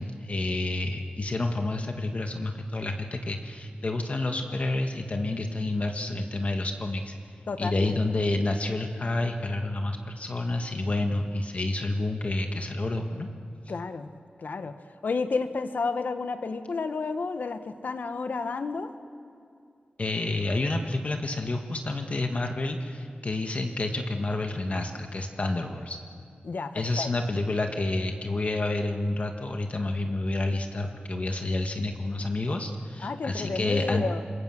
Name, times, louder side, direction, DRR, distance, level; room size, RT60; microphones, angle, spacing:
voice 1, 0.0-7.1 7.6-13.3 20.0-26.0 26.7-34.0, left 2 dB, 45° left, 4 dB, 1.6 m, -29 dB
voice 2, 7.5-7.9 13.7-14.1 14.4-14.8 15.0-18.9 26.4-27.1 33.0-34.2, left 4 dB, 70° left, 9 dB, 1.3 m, -31 dB
26.5 x 22.5 x 7.6 m, 2.4 s
wide cardioid pair, 95°, 3 cm